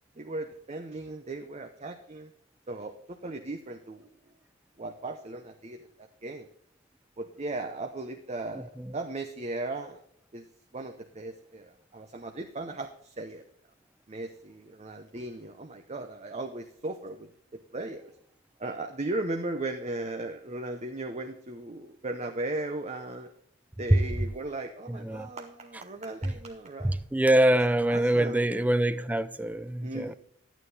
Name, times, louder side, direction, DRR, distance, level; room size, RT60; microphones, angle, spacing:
voice 1, 0.2-2.3 2.7-2.9 3.2-4.1 4.8-5.9 6.2-6.5 7.2-10.0 10.3-10.4 10.7-13.4 14.1-18.1 18.6-23.3 23.8-27.0 27.9-28.4 29.8-30.2, right 2 dB, 35° right, 0.8 m, -37 dB
voice 2, 8.5-9.0 23.9-24.0 24.9-25.3 26.2-26.3 26.8-30.1, right 1 dB, 10° right, 0.4 m, -25 dB
11.0 x 9.2 x 4.1 m
head